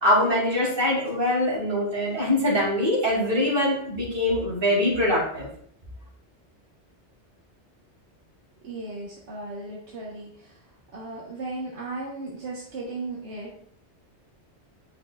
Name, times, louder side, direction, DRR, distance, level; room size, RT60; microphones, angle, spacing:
voice 1, 0.0-5.5, left 1 dB, 50° right, -4 dB, 2.8 m, -23 dB
voice 2, 8.6-10.6 10.9-13.5, right 2 dB, 80° right, -4 dB, 1.5 m, -36 dB
9.0 x 5.5 x 2.4 m, 0.62 s
omnidirectional pair, 1.2 m